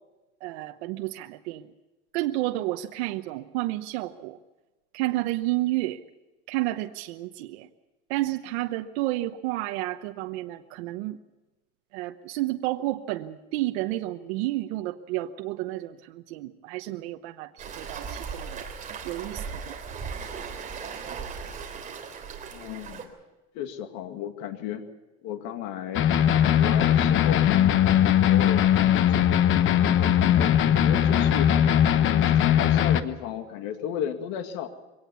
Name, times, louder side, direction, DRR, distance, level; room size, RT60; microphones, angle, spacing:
voice 1, 0.4-1.7 2.1-4.4 4.9-6.0 6.5-7.7 8.1-11.2 11.9-18.6 19.0-19.7, right 17 dB, 85° right, 7 dB, 1.0 m, -31 dB
Waves surf, 17.6-23.0, right 6 dB, 25° right, 3.3 m, -37 dB
voice 2, 22.5-23.1 23.5-24.8 25.2-26.1 26.5-27.4 28.2-31.5 31.9-34.7, left 10 dB, 65° left, 6 dB, 2.2 m, -34 dB
sound 1, 25.9-33.0, left 10 dB, 40° left, 1.0 m, -20 dB
23.5 x 18.0 x 7.0 m, 1.1 s
cardioid pair, 150°, 32 cm